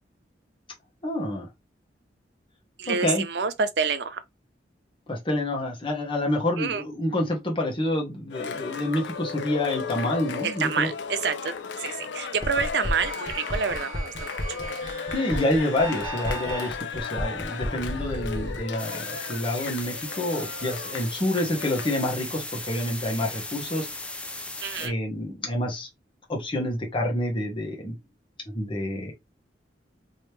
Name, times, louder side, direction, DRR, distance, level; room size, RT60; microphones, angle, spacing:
voice 1, 1.0-1.5 2.9-3.2 5.1-10.9 15.1-23.9 24.8-25.9 26.3-27.9 28.5-29.1, left 1 dB, 30° left, 1.2 m, -28 dB
voice 2, 2.8-4.2 6.6-6.8 10.4-14.3 24.6-24.9, right 5 dB, 70° right, 0.6 m, -28 dB
Cheering, 8.3-22.2, left 6 dB, 90° left, 0.5 m, -35 dB
sound 1, 12.4-18.6, equal, 20° right, 1.2 m, -33 dB
sound 2, 18.8-24.9, left 2 dB, 5° left, 0.4 m, -37 dB
3.1 x 3.0 x 3.3 m
head